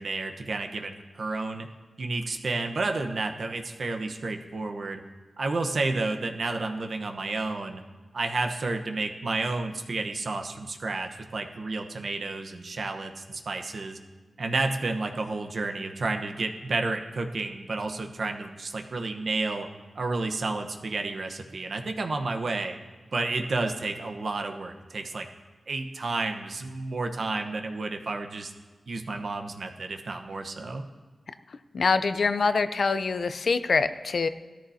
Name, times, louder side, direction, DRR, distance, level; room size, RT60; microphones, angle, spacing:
voice 1, 0.0-1.7 2.0-5.0 5.4-7.8 8.1-14.0 14.4-19.7 19.9-22.8 23.1-25.3 25.7-28.5 28.9-30.9, right 3 dB, 65° right, 5 dB, 1.1 m, -31 dB
voice 2, 31.7-34.3, left 4 dB, 65° left, 11 dB, 0.5 m, -24 dB
18.0 x 13.5 x 2.8 m, 1.3 s
wide cardioid pair, 75°, 0 cm